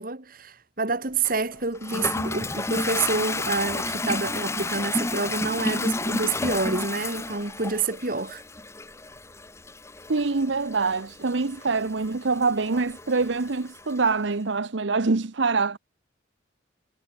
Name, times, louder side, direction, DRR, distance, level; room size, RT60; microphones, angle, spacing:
voice 1, 0.0-8.4, right 4 dB, 45° right, 2.2 m, -28 dB
Toilet flush, 1.2-14.0, left 2 dB, 15° left, 1.0 m, -32 dB
voice 2, 10.1-15.8, right 4 dB, 70° right, 0.8 m, -25 dB
head